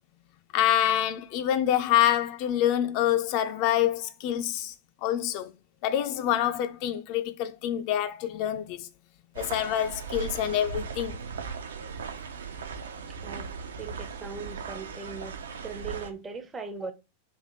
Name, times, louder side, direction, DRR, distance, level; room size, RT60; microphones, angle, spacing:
voice 1, 0.5-4.7 5.0-5.5 5.8-8.9 9.4-11.2, left 11 dB, 45° left, 0.3 m, -26 dB
sound 1, 9.3-16.1, right 5 dB, 65° right, 0.4 m, -38 dB
voice 2, 13.8-16.9, right 4 dB, 20° right, 0.6 m, -39 dB
3.3 x 2.5 x 4.1 m
figure-of-eight pair, 90°, 0 cm